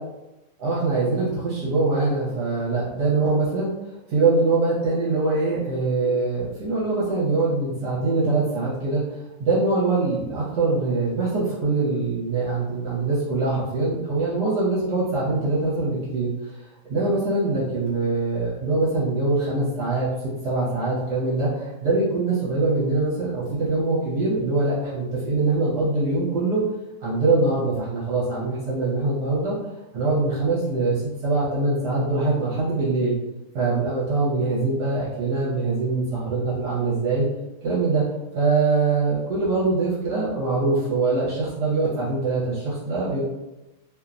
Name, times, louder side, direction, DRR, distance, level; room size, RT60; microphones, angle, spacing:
voice 1, 0.6-3.7 4.1-9.0 9.4-16.6 16.9-20.1 20.4-26.6 27.0-29.6 29.9-33.1 33.5-37.2 37.6-38.0 38.3-43.2, right 3 dB, 75° right, -8 dB, 1.3 m, -23 dB
2.9 x 2.1 x 2.4 m, 1.0 s
omnidirectional pair, 1.8 m